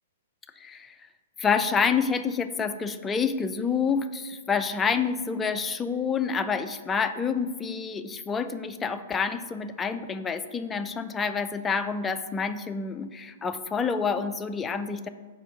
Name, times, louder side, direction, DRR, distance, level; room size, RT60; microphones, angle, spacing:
voice 1, 0.6-0.9 1.4-15.1, left 5 dB, 15° left, 9 dB, 0.3 m, -28 dB
4.9 x 4.5 x 5.2 m, 1.5 s
figure-of-eight pair, 110°, 0 cm